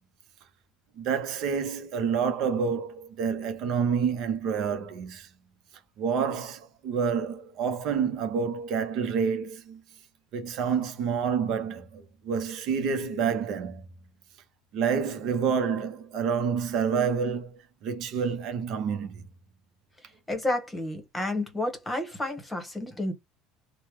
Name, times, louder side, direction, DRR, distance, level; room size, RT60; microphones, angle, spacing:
voice 1, 1.0-5.3 6.0-9.8 10.3-13.8 14.7-19.2, right 6 dB, 55° right, 0.7 m, -28 dB
voice 2, 20.3-23.1, left 1 dB, 10° left, 1.2 m, -30 dB
3.1 x 2.2 x 3.1 m
cardioid pair, 130°, 0 cm